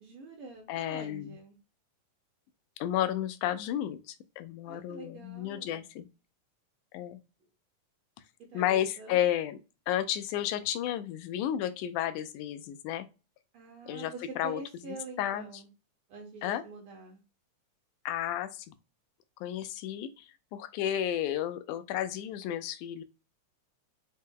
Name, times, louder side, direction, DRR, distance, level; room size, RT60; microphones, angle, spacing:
voice 1, 0.0-1.6 4.7-5.8 8.5-9.2 13.5-15.7 16.1-17.2, right 3 dB, 80° right, 1.2 m, -46 dB
voice 2, 0.7-1.4 2.8-6.1 6.9-7.2 8.5-9.6 9.9-13.1 13.9-14.6 14.9-15.6 16.4-16.6 18.1-18.7 19.4-20.3 20.5-23.0, left 11 dB, 85° left, 2.0 m, -32 dB
5.4 x 2.0 x 3.6 m
omnidirectional pair, 3.5 m